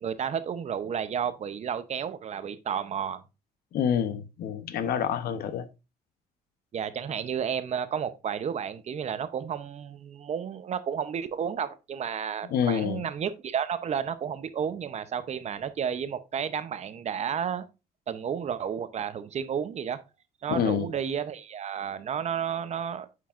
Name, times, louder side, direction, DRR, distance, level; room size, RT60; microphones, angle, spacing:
voice 1, 0.0-3.2 6.7-17.6 18.1-20.0 20.4-23.1, right 8 dB, 40° right, 0.7 m, -32 dB
voice 2, 3.7-5.7 12.5-13.0 20.5-20.9, left 8 dB, 65° left, 0.8 m, -27 dB
9.2 x 4.6 x 2.5 m
cardioid pair, 110°, 17 cm